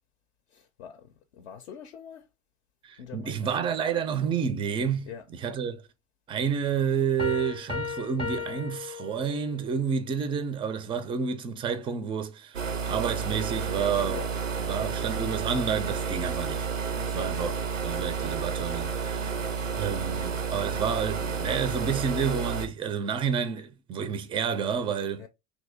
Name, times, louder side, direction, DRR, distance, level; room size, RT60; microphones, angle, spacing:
voice 1, 0.5-2.3 3.0-3.5 5.0-5.3 14.1-14.3 16.9-17.6 19.1-19.5 25.2-25.3, left 8 dB, 60° left, 0.6 m, -44 dB
voice 2, 2.8-5.1 5.4-5.8 6.3-12.6 12.9-14.2 14.6-16.7 17.1-17.5 17.8-19.3 19.8-25.2, right 6 dB, 15° right, 0.4 m, -29 dB
sound 1, 7.2-9.7, left 4 dB, 15° left, 0.7 m, -35 dB
sound 2, 12.5-22.7, right 5 dB, 90° right, 0.5 m, -31 dB
3.0 x 2.7 x 3.5 m
figure-of-eight pair, 75°, 37 cm